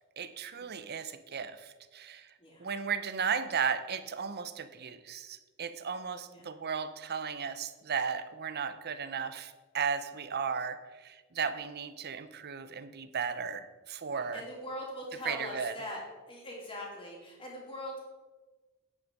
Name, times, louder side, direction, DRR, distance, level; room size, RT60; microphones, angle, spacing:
voice 1, 0.2-2.3 2.6-14.4 15.3-15.7, right 6 dB, 45° right, 12 dB, 0.7 m, -35 dB
voice 2, 14.1-18.0, left 1 dB, 25° left, -2 dB, 3.0 m, -42 dB
9.8 x 8.1 x 5.3 m, 1.3 s
head